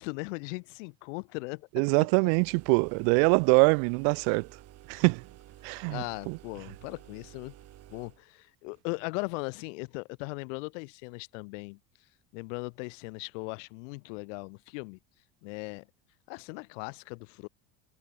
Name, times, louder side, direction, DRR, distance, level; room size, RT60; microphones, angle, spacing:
voice 1, 0.0-1.7 5.9-7.5 7.9-11.8 12.3-15.0 15.4-15.9 16.3-17.5, left 31 dB, 75° left, 3.3 m, -38 dB
voice 2, 1.7-4.5 4.9-5.2 5.6-6.4, right 40 dB or more, 65° right, 0.8 m, -24 dB
sound 1, 2.2-8.2, right 13 dB, 40° right, 7.9 m, -53 dB
cardioid pair, 145°, 37 cm